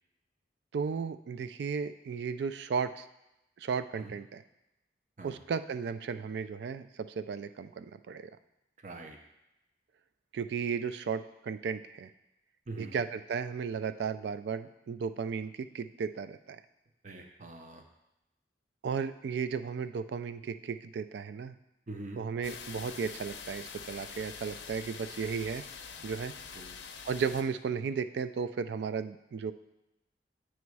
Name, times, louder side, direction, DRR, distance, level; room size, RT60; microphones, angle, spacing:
voice 1, 0.7-3.0 3.6-4.4 5.2-8.3 10.3-12.1 12.8-16.6 18.8-21.5 22.2-25.6 26.0-26.3 27.1-29.5, right 6 dB, 65° right, 12 dB, 0.3 m, -35 dB
voice 2, 8.8-9.2 12.7-13.0 17.0-17.8 21.9-22.2 26.5-26.8, right 2 dB, 40° right, 4 dB, 0.7 m, -44 dB
sound 1, 22.4-27.4, left 6 dB, 75° left, 0.6 m, -45 dB
9.3 x 3.1 x 4.7 m, 0.91 s
head